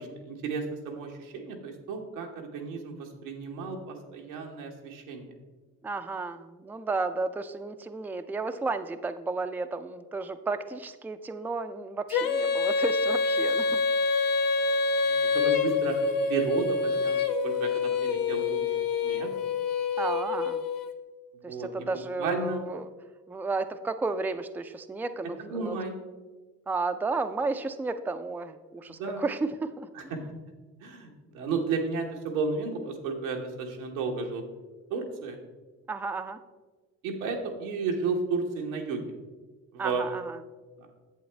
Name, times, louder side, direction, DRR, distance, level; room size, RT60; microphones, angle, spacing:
voice 1, 0.0-5.3 15.0-16.0 16.3-17.2 17.4-18.7 19.0-19.3 21.4-21.9 22.2-22.6 25.4-25.9 28.9-29.2 29.9-30.2 30.8-34.4 34.9-35.4 37.0-39.0 39.7-40.2 40.8-40.9, right 4 dB, 85° right, 2 dB, 1.1 m, -33 dB
voice 2, 5.8-13.8 20.0-20.6 21.4-22.9 23.3-25.8 26.7-29.9 35.9-36.4 39.8-40.4, right 3 dB, 5° right, 8 dB, 0.4 m, -33 dB
Female singing, 12.1-20.9, left 4 dB, 55° left, 0.8 m, -26 dB
8.1 x 7.7 x 3.3 m, 1.3 s
hypercardioid pair, 50°, 40 cm